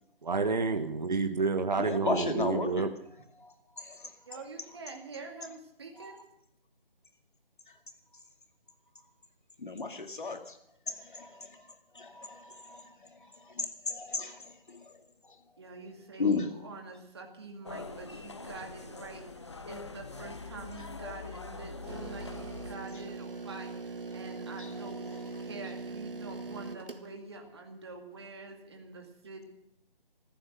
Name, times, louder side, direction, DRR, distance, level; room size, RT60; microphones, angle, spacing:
voice 1, 0.2-2.9, right 4 dB, 45° right, 7 dB, 1.4 m, -29 dB
voice 2, 1.8-4.4 5.9-6.2 7.7-7.8 9.6-10.6 10.9-11.5 11.9-12.8 13.1-15.6 16.2-16.5 24.1-25.5, left 3 dB, 55° left, 6 dB, 2.2 m, -36 dB
voice 3, 4.3-6.2 15.6-25.0 25.4-29.4, right 3 dB, 25° right, 2 dB, 2.3 m, -46 dB
sound 1, 17.6-22.7, left 3 dB, 30° left, 0.9 m, -43 dB
sound 2, 21.8-27.1, right 3 dB, 65° right, 1.7 m, -41 dB
15.0 x 14.5 x 6.6 m, 0.77 s
figure-of-eight pair, 175°, 30 cm